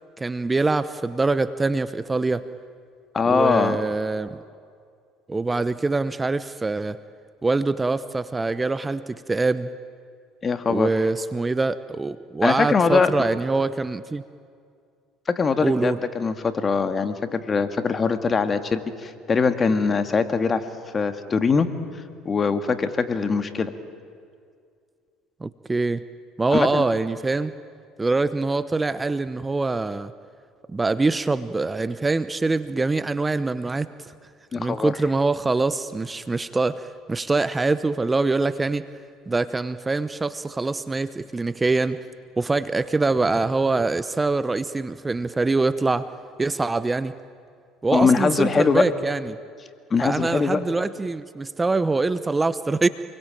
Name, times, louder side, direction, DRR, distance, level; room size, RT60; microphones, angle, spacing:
voice 1, 0.2-2.5 3.3-4.4 5.3-7.0 7.4-9.7 10.7-14.2 15.6-16.0 25.4-26.0 26.4-27.5 28.0-30.1 30.7-33.9 34.6-38.8 39.3-42.0 42.4-46.1 46.4-47.1 47.8-49.4 50.0-52.9, right 3 dB, 20° right, 14 dB, 0.9 m, -24 dB
voice 2, 3.1-3.8 10.4-10.9 12.4-13.1 15.3-20.6 20.9-21.7 22.3-23.7 26.5-26.8 34.5-34.9 47.9-48.8 49.9-50.6, left 5 dB, 35° left, 9 dB, 2.1 m, -22 dB
28.0 x 22.5 x 9.1 m, 2.2 s
supercardioid pair, 75°, 0 cm